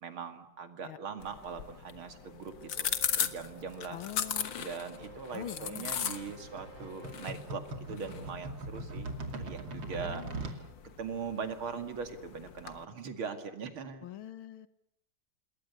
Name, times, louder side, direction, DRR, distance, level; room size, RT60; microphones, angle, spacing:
voice 1, 0.0-2.9 3.2-4.0 4.6-7.6 7.9-10.6 11.0-14.1, right 5 dB, 90° right, 7 dB, 3.1 m, -41 dB
sound 1, 1.2-12.8, left 8 dB, 65° left, 2.0 m, -39 dB
sound 2, 1.4-9.2, right 3 dB, 45° left, 4.0 m, -55 dB
voice 2, 3.9-4.5 5.3-5.9 9.9-10.5 14.0-14.7, left 11 dB, 80° left, 12 dB, 2.1 m, -44 dB
sound 3, 5.0-10.6, right 2 dB, 65° right, 3.2 m, -41 dB
28.0 x 20.5 x 8.3 m, 0.77 s
omnidirectional pair, 2.2 m